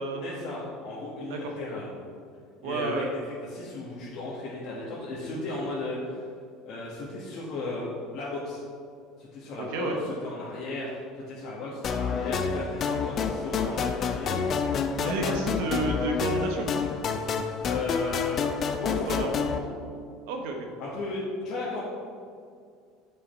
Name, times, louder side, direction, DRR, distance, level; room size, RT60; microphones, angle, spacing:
voice 1, 0.2-1.9 2.6-3.0 3.5-6.2 6.6-8.6 9.2-10.9 11.1-14.7 15.0-15.4 15.6-15.8 17.6-18.5 18.8-19.7 20.8-21.8, left 2 dB, 60° left, -7 dB, 1.6 m, -35 dB
voice 2, 2.6-3.1 9.6-10.0 15.0-16.7 19.1-19.4 20.3-20.7, right 3 dB, 75° right, 3 dB, 1.1 m, -31 dB
sound 1, 11.8-19.6, left 6 dB, 45° left, 0.5 m, -28 dB
7.0 x 5.6 x 4.4 m, 2.2 s
supercardioid pair, 95°, 0 cm